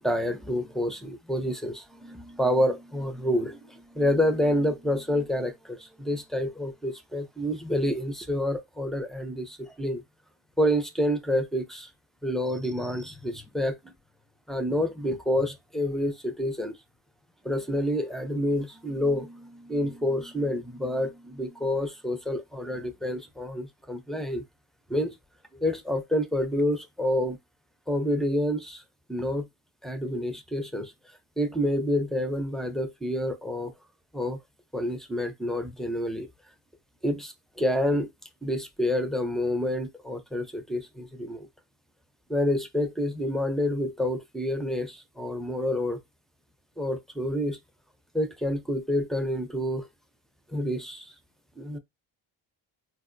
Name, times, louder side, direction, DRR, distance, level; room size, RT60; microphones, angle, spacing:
voice 1, 0.0-10.0 10.6-11.9 12.2-13.8 14.5-16.7 17.4-24.4 24.9-25.2 25.5-27.4 27.9-28.8 29.1-29.5 29.8-30.9 31.4-33.7 34.1-34.4 34.7-36.3 37.0-38.1 38.4-41.5 42.3-46.0 46.8-47.6 48.1-49.9 50.5-51.1 51.6-51.8, left 1 dB, ahead, 0.4 m, -28 dB
4.3 x 2.0 x 2.5 m
cardioid pair, 85°, 44 cm